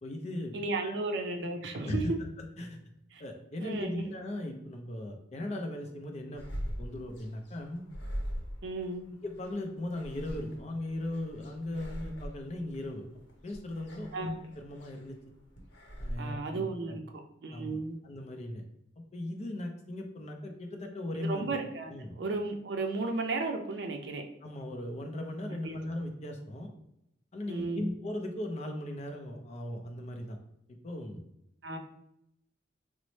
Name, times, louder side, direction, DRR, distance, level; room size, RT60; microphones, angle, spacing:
voice 1, 0.0-0.5 0.8-1.0 1.8-2.8 3.2-6.4 6.8-7.8 9.2-13.0 13.4-15.2 16.0-17.0 17.5-17.8 18.0-18.6 19.0-21.4 21.9-22.1 24.4-26.7 27.3-30.4 30.8-31.2, left 1 dB, 35° left, 3 dB, 0.4 m, -38 dB
voice 2, 0.5-2.2 3.1-3.2 3.6-4.1 8.6-9.1 14.1-14.4 16.2-17.0 17.4-18.0 21.2-24.2 25.6-25.8 27.5-27.9 31.6-31.8, right 3 dB, 65° right, 4 dB, 0.4 m, -34 dB
sound 1, 6.4-16.2, equal, 70° left, 0.8 m, -42 dB
4.0 x 2.0 x 3.1 m, 0.81 s
head